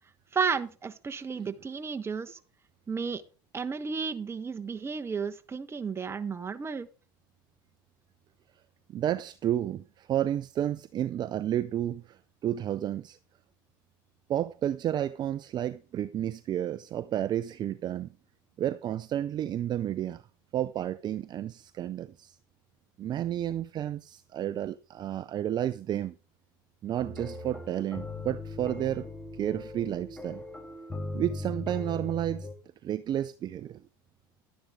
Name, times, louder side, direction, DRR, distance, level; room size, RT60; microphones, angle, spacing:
voice 1, 0.3-2.4 2.9-3.2 3.5-6.9, right 5 dB, 25° right, 1.2 m, -33 dB
voice 2, 8.9-13.2 14.3-18.1 18.6-20.2 20.5-22.4 23.0-26.1 26.8-29.1 29.3-30.4 31.1-32.5 32.8-33.8, right 11 dB, 40° right, 0.5 m, -31 dB
sound 1, 27.0-32.5, left 2 dB, 10° left, 1.9 m, -39 dB
11.5 x 10.0 x 3.7 m
supercardioid pair, 90°, 11 cm